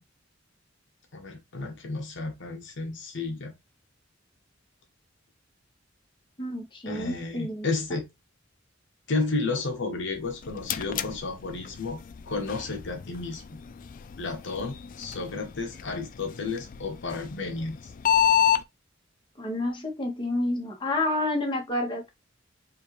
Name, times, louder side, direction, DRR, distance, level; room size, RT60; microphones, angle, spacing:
voice 1, 1.1-3.5 6.9-8.1 9.1-12.0 12.3-13.4 14.2-17.9, left 3 dB, 65° left, 0.8 m, -32 dB
voice 2, 6.4-8.0 19.4-22.1, left 1 dB, 25° left, 1.3 m, -29 dB
sound 1, 10.1-18.6, left 9 dB, 45° left, 0.3 m, -30 dB
5.0 x 2.5 x 3.0 m
head